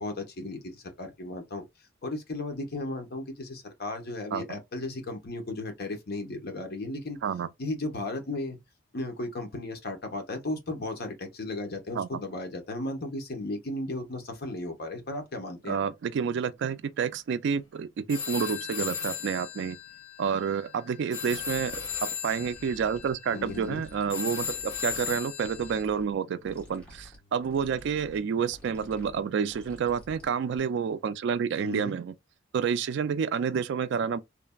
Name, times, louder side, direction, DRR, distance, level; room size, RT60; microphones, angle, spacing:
voice 1, 0.0-1.6 2.0-7.2 7.6-8.6 8.9-15.8 23.3-23.8 31.6-32.0, left 2 dB, 50° left, 0.8 m, -35 dB
voice 2, 15.7-19.8 20.2-32.1 32.5-34.2, right 6 dB, 60° right, 0.3 m, -29 dB
sound 1, 18.1-25.8, left 7 dB, 80° left, 0.9 m, -37 dB
sound 2, 21.3-30.6, equal, 5° left, 1.1 m, -52 dB
3.2 x 2.1 x 2.2 m
head